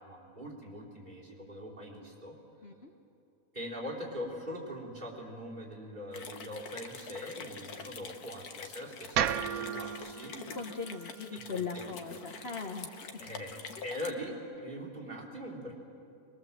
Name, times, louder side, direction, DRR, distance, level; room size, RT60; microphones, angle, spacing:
voice 1, 0.0-2.4 3.5-10.3 11.3-12.3 13.2-15.7, equal, 30° right, -1 dB, 4.2 m, -42 dB
sound 1, 6.1-14.1, left 5 dB, 80° left, 1.6 m, -46 dB
sound 2, 9.1-13.3, right 9 dB, 75° right, 1.1 m, -36 dB
voice 2, 10.5-13.0, left 5 dB, 45° left, 3 dB, 1.2 m, -39 dB
23.5 x 21.5 x 7.5 m, 2.6 s
omnidirectional pair, 1.6 m